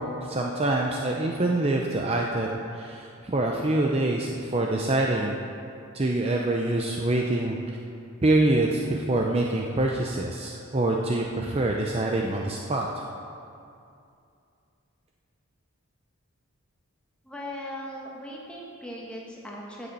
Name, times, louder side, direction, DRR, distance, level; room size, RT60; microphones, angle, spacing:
voice 1, 0.0-5.4 5.9-7.6 8.2-13.0, right 2 dB, 25° right, 0 dB, 0.5 m, -25 dB
voice 2, 17.2-19.9, left 1 dB, 5° left, -3 dB, 1.4 m, -38 dB
9.2 x 6.9 x 7.6 m, 2.5 s
head